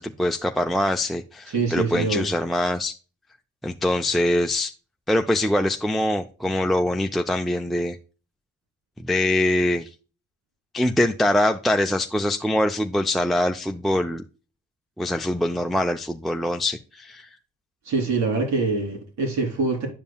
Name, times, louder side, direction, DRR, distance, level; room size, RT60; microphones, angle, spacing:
voice 1, 0.0-2.9 3.6-4.7 5.1-8.0 9.0-9.9 10.7-14.2 15.0-17.3, left 1 dB, ahead, 0.4 m, -23 dB
voice 2, 1.5-2.2 17.8-19.9, right 4 dB, 70° right, 3.2 m, -24 dB
10.0 x 5.3 x 2.3 m
cardioid pair, 90°, 30 cm